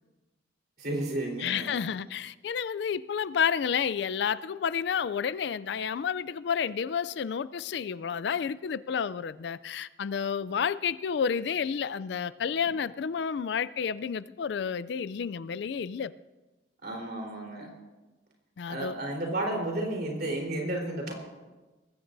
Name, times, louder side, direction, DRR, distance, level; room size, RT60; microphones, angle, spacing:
voice 1, 0.8-1.8 16.8-17.7 18.7-21.1, right 1 dB, 55° right, 3.9 m, -32 dB
voice 2, 1.4-16.1 18.6-19.0, left 7 dB, 65° left, 0.3 m, -30 dB
20.5 x 15.5 x 2.6 m
head